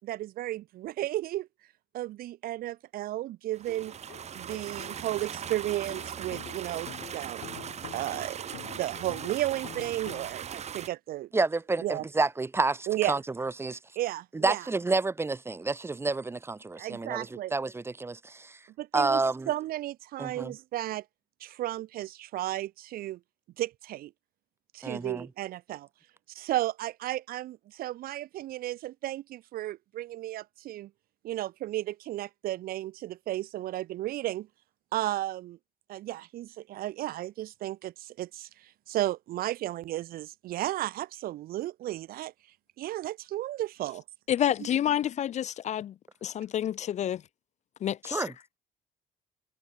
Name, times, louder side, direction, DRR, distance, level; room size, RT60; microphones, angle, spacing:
voice 1, 0.0-1.5 1.9-3.9 4.3-7.7 7.9-11.3 11.8-12.0 12.9-13.2 14.0-14.6 16.8-17.5 18.8-19.2 19.5-21.0 21.4-23.2 23.6-24.1 24.7-25.9 26.3-30.9 31.2-34.5 34.9-35.6 35.9-42.3 42.8-44.0, right 15 dB, 60° right, 0.4 m, -34 dB
sound 1, 3.5-10.9, right 8 dB, 40° right, 1.2 m, -39 dB
sound 2, 3.7-10.3, left 16 dB, 75° left, 1.2 m, -48 dB
voice 2, 11.3-13.8 14.3-18.6 18.9-19.5 20.2-20.5 24.8-25.3 48.0-48.3, right 3 dB, 15° right, 0.8 m, -29 dB
voice 3, 44.3-45.9 46.2-47.2 47.8-48.3, left 10 dB, 45° left, 0.4 m, -29 dB
cardioid pair, 110°, 17 cm